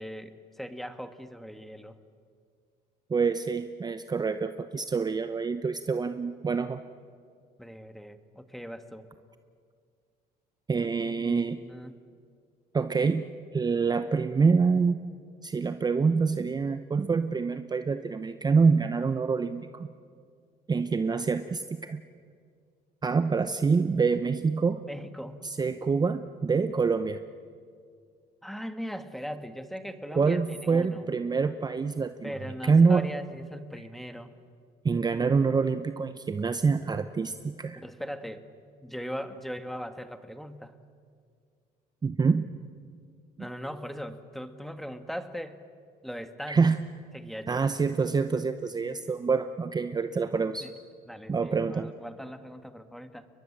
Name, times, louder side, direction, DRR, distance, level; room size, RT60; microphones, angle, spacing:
voice 1, 0.0-2.0 7.6-9.1 11.0-11.9 24.9-25.4 28.4-31.0 32.2-34.3 37.8-38.4 38.8-40.7 43.4-45.6 46.0-46.7 47.1-47.7 50.4-50.7 51.1-53.3, equal, ahead, 9 dB, 1.6 m, -39 dB
voice 2, 3.1-6.8 10.7-11.6 12.7-13.2 13.5-15.0 15.4-19.9 20.7-22.0 23.0-24.8 25.4-27.2 30.1-32.3 32.6-33.1 34.8-37.8 42.0-42.5 46.5-46.8 47.5-50.7 51.3-51.9, right 5 dB, 25° right, 10 dB, 0.8 m, -26 dB
30.0 x 22.0 x 7.4 m, 2.2 s
cardioid pair, 110°, 17 cm